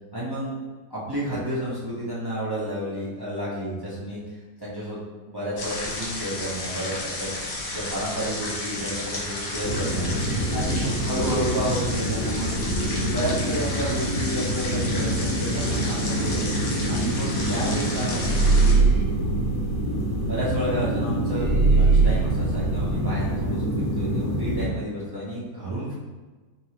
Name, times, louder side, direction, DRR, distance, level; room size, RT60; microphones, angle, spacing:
voice 1, 0.1-0.5 0.9-4.2 4.6-7.3 7.7-12.5 13.1-16.4 16.9-18.8 20.3-25.9, equal, 25° right, -9 dB, 0.4 m, -31 dB
sound 1, 5.6-18.7, left 2 dB, 75° left, 1.5 m, -32 dB
sound 2, 9.6-24.7, right 1 dB, 50° left, 1.2 m, -27 dB
sound 3, 18.2-20.4 21.4-23.4, right 4 dB, 70° right, 1.0 m, -21 dB
4.6 x 2.8 x 2.9 m, 1.3 s
omnidirectional pair, 1.9 m